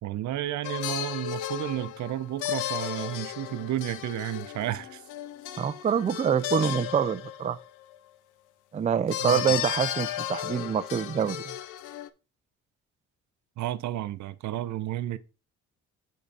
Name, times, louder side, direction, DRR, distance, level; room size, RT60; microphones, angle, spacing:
voice 1, 0.0-5.0 9.2-9.4 13.6-15.2, right 13 dB, 70° right, 0.6 m, -32 dB
sound 1, 0.6-8.0 9.1-12.1, left 12 dB, 85° left, 0.6 m, -34 dB
voice 2, 5.6-7.6 8.7-11.5, right 7 dB, 25° right, 0.4 m, -26 dB
8.7 x 3.8 x 4.1 m
cardioid pair, 90°, 30 cm